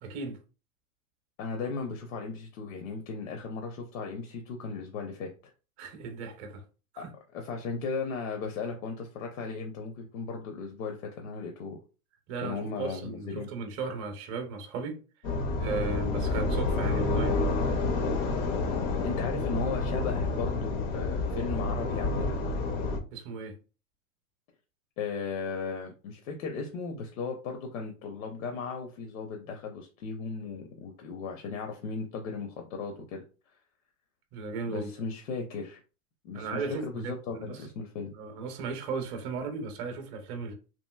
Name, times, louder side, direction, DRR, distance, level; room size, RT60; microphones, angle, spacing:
voice 1, 0.0-0.4 5.8-6.6 6.9-7.1 12.3-15.0 15.6-17.7 23.1-23.6 34.3-34.9 36.3-37.6 38.1-40.5, right 4 dB, 30° right, 0.6 m, -36 dB
voice 2, 1.4-5.5 7.0-7.1 7.3-11.8 12.4-13.5 19.0-22.4 25.0-33.2 34.7-35.8 36.2-38.1, left 4 dB, 70° left, 0.7 m, -36 dB
sound 1, 15.2-23.0, left 3 dB, 30° left, 0.4 m, -29 dB
2.9 x 2.6 x 2.2 m
hypercardioid pair, 130°, 43 cm